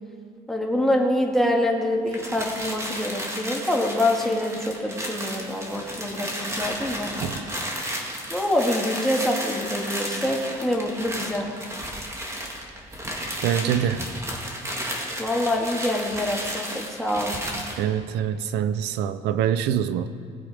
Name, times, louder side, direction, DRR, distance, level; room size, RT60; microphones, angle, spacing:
voice 1, 0.5-7.1 8.3-11.5 15.2-17.3, left 1 dB, ahead, 0 dB, 2.0 m, -25 dB
sound 1, 2.1-17.8, equal, 15° right, 2.2 m, -33 dB
voice 2, 13.4-14.1 17.8-20.1, right 9 dB, 85° right, 13 dB, 0.6 m, -24 dB
20.0 x 7.3 x 5.0 m, 2.6 s
cardioid pair, 110°, 17 cm